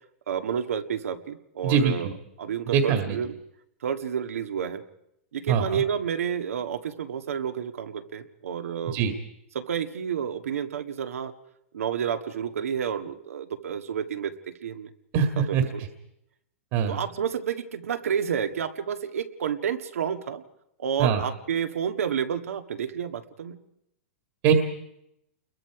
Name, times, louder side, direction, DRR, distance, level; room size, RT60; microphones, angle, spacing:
voice 1, 0.3-2.1 2.4-3.4 3.8-4.8 5.3-9.0 9.5-11.3 11.7-14.3 14.6-14.9 15.5-15.8 16.9-20.4 20.8-23.6, right 8 dB, 85° right, 8 dB, 1.7 m, -30 dB
voice 2, 1.6-2.1 2.7-3.2 5.5-5.8 8.9-9.1 15.1-15.6 16.7-17.0 21.0-21.2 24.4-24.5, right 7 dB, 40° right, 5 dB, 2.0 m, -22 dB
28.5 x 22.0 x 4.9 m, 0.79 s
hypercardioid pair, 150°, 7 cm